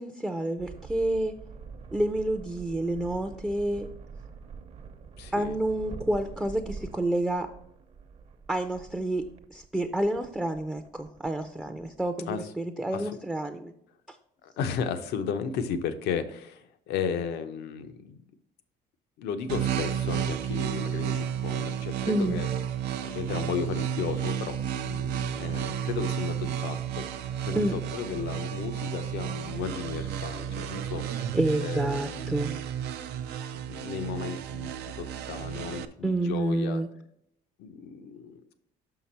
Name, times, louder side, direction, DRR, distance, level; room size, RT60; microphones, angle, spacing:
voice 1, 0.0-1.3 1.9-3.9 5.3-7.5 8.5-9.2 9.5-13.7 14.1-14.2 22.1-22.4 27.5-27.7 31.3-32.5 36.0-36.9, right 1 dB, 5° right, 6 dB, 0.5 m, -29 dB
sound 1, 0.6-12.1, right 5 dB, 40° right, 0.8 m, -45 dB
voice 2, 5.2-5.6 12.3-12.5 12.9-13.2 14.4-18.2 19.2-22.5 22.9-24.6 24.8-31.3 31.6-32.4 33.5-36.8 37.6-38.5, left 7 dB, 80° left, 9 dB, 0.8 m, -35 dB
sound 2, 19.5-35.8, right 9 dB, 75° right, 0.5 m, -32 dB
5.9 x 5.8 x 4.3 m, 0.75 s
cardioid pair, 110°, 17 cm